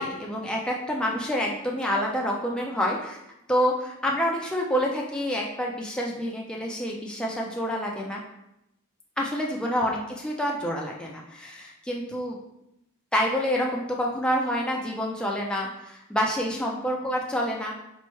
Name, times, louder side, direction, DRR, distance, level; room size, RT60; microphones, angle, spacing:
voice 1, 0.0-3.2 3.5-8.2 9.2-12.4 13.1-17.8, equal, 5° left, -2 dB, 0.3 m, -27 dB
4.3 x 2.1 x 3.1 m, 0.85 s
head